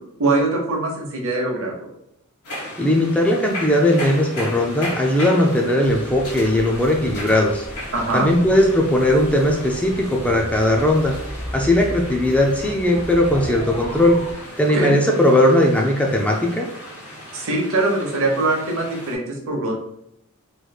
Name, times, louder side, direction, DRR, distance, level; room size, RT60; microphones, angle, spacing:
voice 1, 0.2-1.9 7.9-8.3 14.7-15.0 17.3-19.8, right 2 dB, 65° right, 0 dB, 0.9 m, -22 dB
sound 1, 2.4-19.1, left 1 dB, 85° left, 1.4 m, -36 dB
voice 2, 2.8-7.7 8.1-11.2 11.5-14.3 14.6-16.7, left 1 dB, 5° left, 0 dB, 0.3 m, -18 dB
sound 2, 5.8-14.3, equal, 25° left, 0.9 m, -35 dB
3.1 x 3.1 x 2.3 m, 0.78 s
head